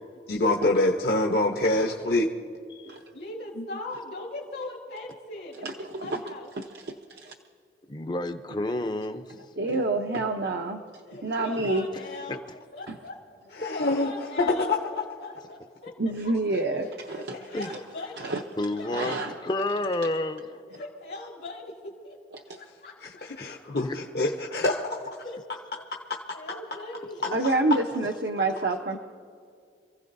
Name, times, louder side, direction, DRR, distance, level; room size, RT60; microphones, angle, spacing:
voice 1, 0.3-2.3 3.6-3.7 13.5-14.1 14.4-14.8 23.0-25.2, left 2 dB, 60° left, 0 dB, 0.9 m, -25 dB
voice 2, 3.1-6.5 9.6-9.7 10.7-10.8 11.1-12.4 12.7-13.2 13.4-15.9 16.2-16.3 16.7-18.5 18.8-19.5 20.7-22.2 22.6-23.0 23.5-23.8 25.2-25.4 26.3-27.3 28.4-29.0, left 2 dB, 80° left, -6 dB, 2.1 m, -40 dB
voice 3, 5.6-6.2 6.6-7.3 9.6-10.8 11.2-11.8 12.9-13.0 16.0-17.4 18.2-18.4 18.9-19.3 22.3-22.6 27.3-29.0, right 2 dB, 70° right, 2 dB, 0.8 m, -28 dB
voice 4, 7.9-9.3 12.3-12.4 17.5-17.7 18.6-19.2 19.4-20.6 23.8-24.0, left 2 dB, 25° left, 8 dB, 0.6 m, -30 dB
27.5 x 15.5 x 2.7 m, 2.2 s
head